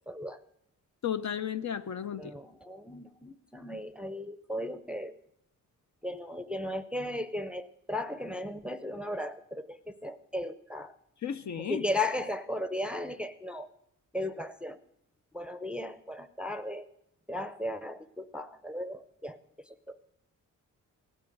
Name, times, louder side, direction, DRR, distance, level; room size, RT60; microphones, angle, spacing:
voice 1, 0.1-0.4 2.2-5.1 6.0-11.0 11.6-13.7 14.1-14.8 15.3-16.9 17.3-19.4 19.9-20.0, left 1 dB, 5° right, 12 dB, 0.6 m, -36 dB
voice 2, 1.0-2.3 11.2-11.9, left 8 dB, 60° left, 10 dB, 0.6 m, -34 dB
17.0 x 9.1 x 7.7 m, 0.78 s
wide cardioid pair, 105°, 33 cm